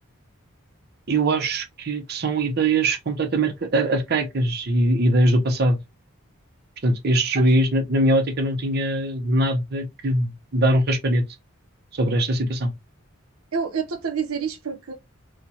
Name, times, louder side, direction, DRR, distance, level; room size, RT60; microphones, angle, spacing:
voice 1, 1.1-5.8 6.8-11.2 11.9-12.7, right 1 dB, 50° right, 0.7 m, -21 dB
voice 2, 13.5-14.9, right 6 dB, 90° right, 0.6 m, -27 dB
4.2 x 2.2 x 2.7 m
head